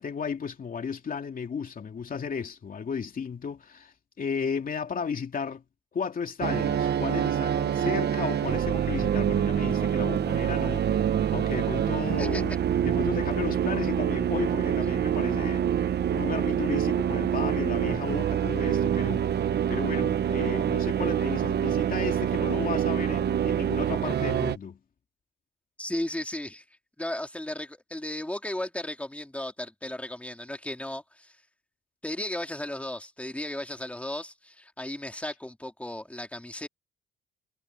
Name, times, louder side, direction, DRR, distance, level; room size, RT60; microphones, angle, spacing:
voice 1, 0.0-5.6 5.9-10.8 11.3-24.8, left 6 dB, 45° left, 2.6 m, -34 dB
sound 1, 6.4-24.6, right 9 dB, 55° right, 1.2 m, -26 dB
voice 2, 25.8-26.6 27.0-31.4 32.0-36.7, left 1 dB, 5° left, 3.2 m, -35 dB
cardioid pair, 90°, 20 cm